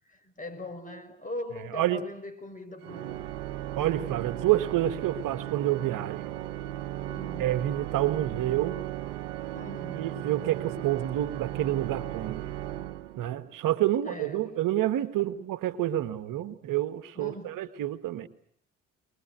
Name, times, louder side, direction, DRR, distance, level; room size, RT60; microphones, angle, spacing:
voice 1, 0.1-3.2 7.1-7.6 9.5-10.2 14.0-14.6 17.1-17.6, left 1 dB, 20° left, 5.9 m, -41 dB
Organ, 2.8-13.6, right 13 dB, 85° right, 1.1 m, -36 dB
voice 2, 3.8-6.3 7.4-8.8 9.9-12.4 13.2-18.3, right 13 dB, 60° right, 1.6 m, -28 dB
23.5 x 21.0 x 9.3 m
hypercardioid pair, 55°, 36 cm